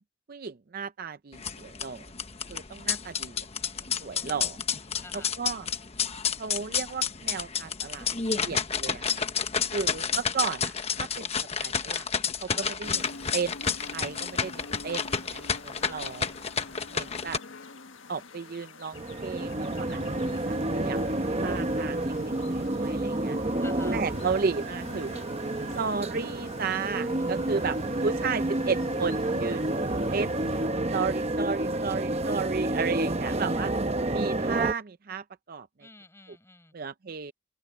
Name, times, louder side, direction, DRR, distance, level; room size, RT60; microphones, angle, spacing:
voice 1, 0.3-2.1 2.5-3.5 3.8-4.6 5.1-5.7 6.4-8.1 8.4-9.2 9.7-11.3 11.6-12.1 12.4-13.6 13.9-16.3 16.9-17.4 18.1-21.0 21.4-23.4 23.9-25.2 25.8-29.7 30.1-30.4 30.9-33.7 34.1-35.7 36.7-37.3, right 5 dB, 45° right, 0.5 m, -34 dB
sound 1, 1.3-17.4, left 6 dB, 30° left, 1.1 m, -30 dB
voice 2, 3.6-4.3 5.0-5.3 12.4-12.8 15.8-16.1 23.6-24.0 27.2-27.7 32.7-33.9 35.8-36.7, left 2 dB, 15° left, 6.2 m, -53 dB
sound 2, 12.8-30.7, left 3 dB, 75° left, 1.6 m, -47 dB
sound 3, 18.9-34.7, right 1 dB, 30° right, 0.9 m, -29 dB
open air
head